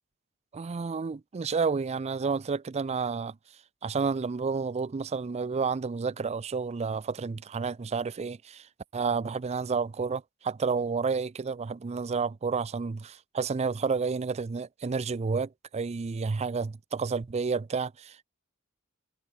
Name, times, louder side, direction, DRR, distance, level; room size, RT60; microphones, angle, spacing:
voice 1, 0.5-3.4 3.8-18.2, right 5 dB, 30° right, 0.4 m, -30 dB
head